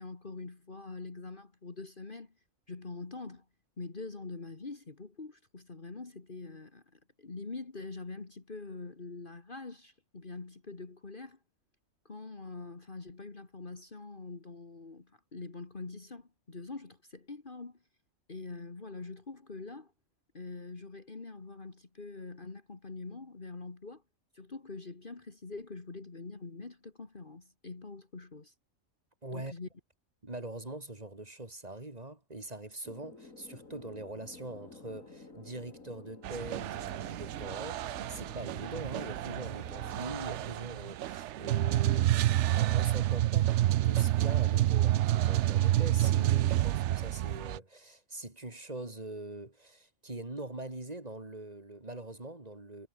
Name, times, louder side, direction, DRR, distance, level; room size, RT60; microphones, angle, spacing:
voice 1, 0.0-2.3 2.7-3.4 3.8-11.4 12.1-17.8 18.3-19.9 20.3-24.0 24.3-28.5 29.3-29.7, left 3 dB, 40° left, 2.1 m, -44 dB
voice 2, 29.2-29.5 30.2-42.1 42.5-43.6 43.8-52.9, right 2 dB, 30° right, 3.0 m, -43 dB
sound 1, 32.8-40.5, left 3 dB, 75° left, 4.2 m, -52 dB
sound 2, 36.2-47.6, right 13 dB, 65° right, 0.8 m, -29 dB
omnidirectional pair, 1.4 m